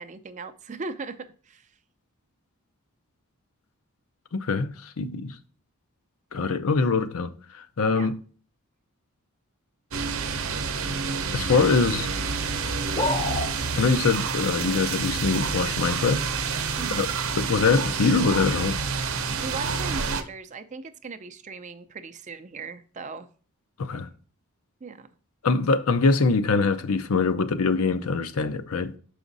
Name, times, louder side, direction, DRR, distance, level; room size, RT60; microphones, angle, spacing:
voice 1, 0.0-1.7 7.9-8.1 16.8-17.1 19.2-23.3 24.8-25.1, right 4 dB, 35° right, 0.4 m, -38 dB
voice 2, 4.3-5.4 6.3-8.1 11.3-12.1 13.7-16.2 16.5-16.7 16.9-17.1 17.4-18.8 23.8-24.1 25.4-28.9, left 4 dB, 75° left, 0.6 m, -23 dB
sound 1, 9.9-20.2, right 5 dB, 65° right, 0.7 m, -28 dB
sound 2, 13.0-13.5, left 2 dB, 25° left, 0.7 m, -26 dB
6.1 x 5.0 x 3.9 m
head